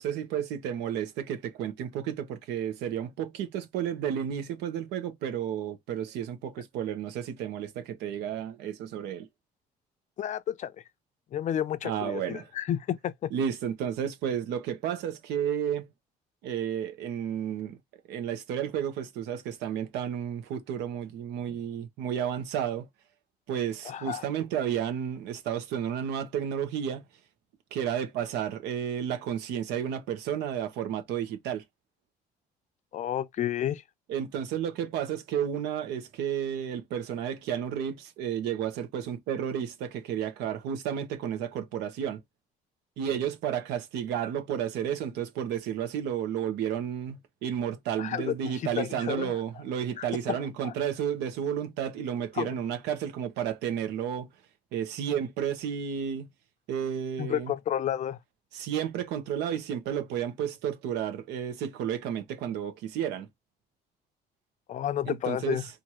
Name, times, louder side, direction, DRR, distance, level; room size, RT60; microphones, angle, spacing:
voice 1, 0.0-9.3 11.8-12.4 13.3-15.9 16.4-17.8 18.1-22.9 23.5-27.0 27.7-31.6 34.1-42.2 43.0-54.3 54.7-56.3 56.7-57.5 58.5-63.3 65.1-65.6, right 9 dB, 90° right, 0.9 m, -32 dB
voice 2, 10.2-10.7 11.3-13.3 23.8-24.3 32.9-33.8 48.0-49.4 50.0-50.7 52.3-52.6 57.2-58.2 64.7-65.7, left 10 dB, 45° left, 0.4 m, -31 dB
4.5 x 2.6 x 2.9 m
cardioid pair, 110°, 17 cm